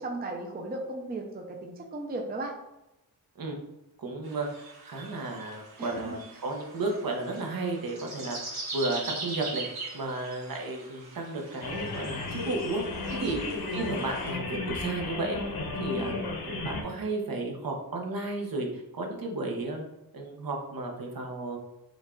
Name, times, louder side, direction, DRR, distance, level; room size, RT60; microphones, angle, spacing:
voice 1, 0.0-2.5 5.8-6.2 13.2-13.3, right 2 dB, 25° right, 2 dB, 0.5 m, -36 dB
voice 2, 4.0-6.2 6.4-9.6 9.9-12.8 13.2-13.4 13.7-15.4 15.8-16.1 16.4-19.8 20.1-21.6, right 2 dB, 65° right, 1 dB, 1.0 m, -33 dB
sound 1, 4.2-14.3, right 3 dB, 80° right, 1.4 m, -42 dB
sound 2, 11.6-16.8, left 3 dB, 80° left, 1.0 m, -34 dB
5.2 x 2.4 x 3.7 m, 0.94 s
wide cardioid pair, 115°, 37 cm